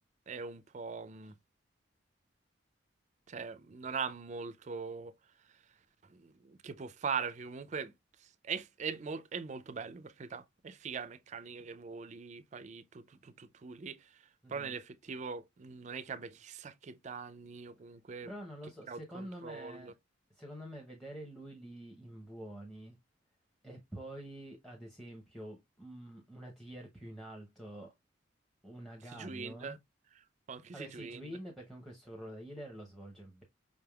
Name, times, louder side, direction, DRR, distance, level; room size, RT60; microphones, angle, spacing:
voice 1, 0.3-1.4 3.3-5.1 6.1-7.9 8.2-18.3 18.9-19.9 29.1-29.8 30.2-31.4, right 5 dB, 35° right, 0.4 m, -42 dB
voice 2, 14.4-14.8 18.2-19.9 20.3-23.0 23.6-27.9 28.6-29.8 30.7-33.4, right 1 dB, ahead, 0.7 m, -47 dB
5.1 x 3.4 x 2.2 m
head